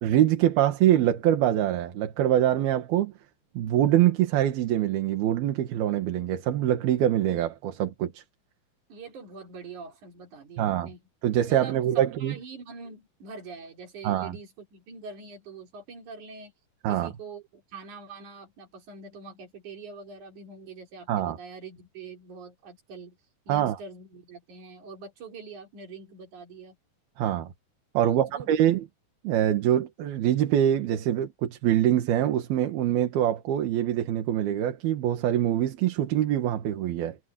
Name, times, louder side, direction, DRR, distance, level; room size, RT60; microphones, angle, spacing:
voice 1, 0.0-3.1 3.6-8.2 10.6-10.9 11.2-12.4 14.0-14.4 16.8-17.1 21.1-21.4 23.5-23.8 27.2-27.5 28.0-28.8 29.2-37.2, right 11 dB, 80° right, 3.5 m, -24 dB
voice 2, 8.9-11.0 11.5-16.5 16.9-23.2 23.5-26.8 28.0-28.6, right 4 dB, 55° right, 4.7 m, -44 dB
omnidirectional pair, 4.3 m